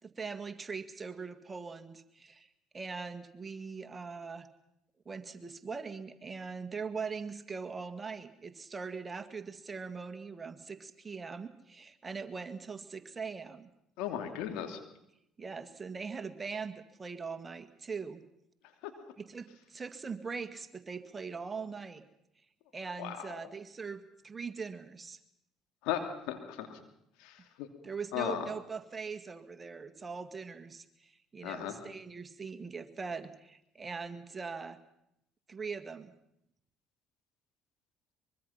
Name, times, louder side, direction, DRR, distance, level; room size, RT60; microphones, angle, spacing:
voice 1, 0.0-2.5 2.7-4.5 5.1-13.7 15.4-16.7 17.0-18.2 19.2-22.0 22.7-25.2 27.8-34.8 35.5-36.1, right 5 dB, 30° right, 8 dB, 2.0 m, -41 dB
voice 2, 14.0-14.8 18.8-18.9 23.0-23.5 25.8-26.7 27.2-27.7 28.1-28.5 31.4-31.8, left 10 dB, 75° left, 5 dB, 2.8 m, -36 dB
23.5 x 23.0 x 5.9 m, 0.79 s
hypercardioid pair, 60°, 0 cm